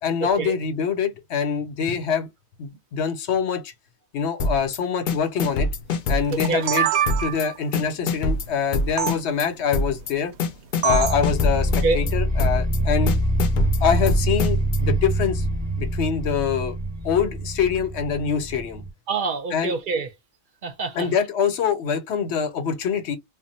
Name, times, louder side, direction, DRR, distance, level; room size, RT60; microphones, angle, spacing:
voice 1, 0.0-2.3 2.6-3.7 4.1-5.7 6.1-6.9 7.2-10.3 10.8-13.1 13.8-15.4 15.8-16.8 17.0-18.8 19.5-19.8 20.9-23.2, left 7 dB, 90° left, 1.0 m, -24 dB
sound 1, 4.4-4.8 5.1-6.8 7.1-7.4 7.7-9.4 9.7-10.1 10.4-12.1 12.4-12.8 13.1-14.8, left 3 dB, 60° left, 0.7 m, -25 dB
voice 2, 6.3-6.6 11.8-12.0 19.1-20.1 20.6-21.1, right 4 dB, 60° right, 0.7 m, -26 dB
sound 2, 6.3-7.6 9.0-9.1 10.8-11.2, right 10 dB, 90° right, 0.9 m, -24 dB
sound 3, 11.0-18.9, right 1 dB, 10° right, 0.9 m, -25 dB
2.4 x 2.1 x 3.9 m
omnidirectional pair, 1.1 m